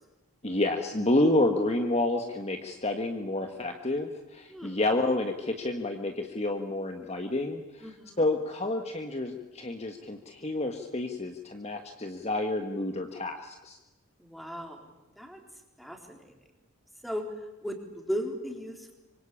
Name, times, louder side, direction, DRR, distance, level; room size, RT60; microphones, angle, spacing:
voice 1, 0.4-13.8, left 2 dB, 30° left, 5 dB, 1.6 m, -29 dB
voice 2, 4.5-4.8 7.8-8.3 14.2-14.9 15.2-15.4 15.8-16.3 17.0-17.2 17.6-19.0, equal, ahead, 3 dB, 3.8 m, -36 dB
25.0 x 25.0 x 8.6 m, 1.0 s
head